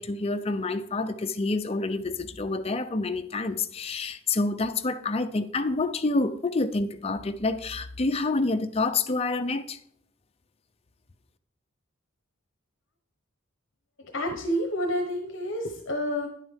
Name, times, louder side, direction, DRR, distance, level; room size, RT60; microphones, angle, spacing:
voice 1, 0.0-9.8, left 3 dB, 30° left, 0.5 m, -28 dB
voice 2, 14.0-16.3, equal, 60° left, 1.0 m, -29 dB
10.5 x 9.2 x 3.6 m
head